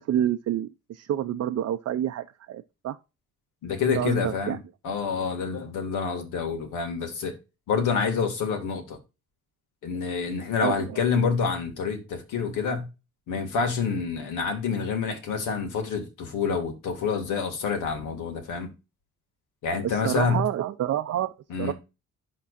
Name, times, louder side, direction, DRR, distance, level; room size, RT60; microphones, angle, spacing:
voice 1, 0.1-3.0 4.0-4.6 10.6-11.0 19.8-21.3 21.6-21.7, right 11 dB, 60° right, 0.6 m, -28 dB
voice 2, 3.6-4.6 4.8-7.4 7.7-9.0 9.8-12.9 13.3-18.7 19.6-20.5 21.5-21.7, left 5 dB, 85° left, 2.2 m, -27 dB
11.0 x 3.8 x 2.6 m
cardioid pair, 90°, 30 cm